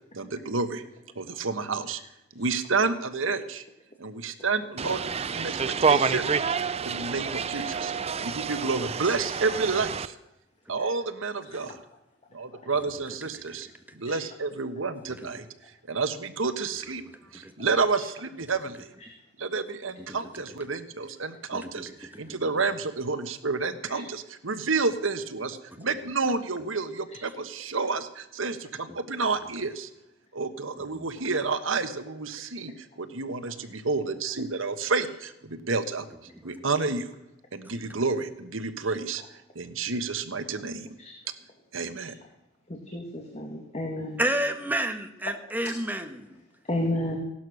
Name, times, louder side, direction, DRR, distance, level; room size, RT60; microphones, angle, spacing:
voice 1, 0.1-0.8 1.1-2.0 2.3-3.6 4.0-5.0 5.3-6.3 6.6-7.9 8.2-10.2 10.7-11.8 12.3-13.7 13.9-15.5 15.9-17.0 17.3-18.9 19.4-29.9 30.3-36.1 36.4-37.1 37.5-39.2 39.5-41.0 41.7-42.1, right 4 dB, 85° right, 10 dB, 1.4 m, -30 dB
sound 1, 4.8-10.1, right 5 dB, 30° right, 0.6 m, -28 dB
voice 2, 21.5-21.8 22.1-22.2 30.9-31.0 36.4-36.5 44.2-46.4, right 1 dB, 10° right, 7 dB, 1.4 m, -30 dB
voice 3, 42.7-44.2 46.7-47.2, left 1 dB, 35° left, 2 dB, 2.1 m, -31 dB
17.0 x 12.0 x 6.4 m, 0.86 s
head